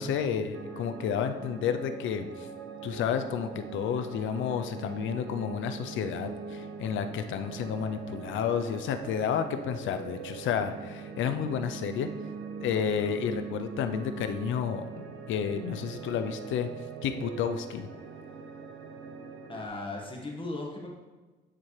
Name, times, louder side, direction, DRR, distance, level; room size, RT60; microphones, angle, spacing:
voice 1, 0.0-2.5 2.8-12.1 12.6-14.8 15.3-16.7 17.0-17.9, left 7 dB, 75° left, 8 dB, 0.5 m, -31 dB
sound 1, 0.5-19.7, right 5 dB, 85° right, 0.7 m, -42 dB
voice 2, 19.5-20.9, left 2 dB, 25° left, -1 dB, 1.4 m, -37 dB
9.6 x 4.3 x 3.2 m, 1.2 s
cardioid pair, 90°, 20 cm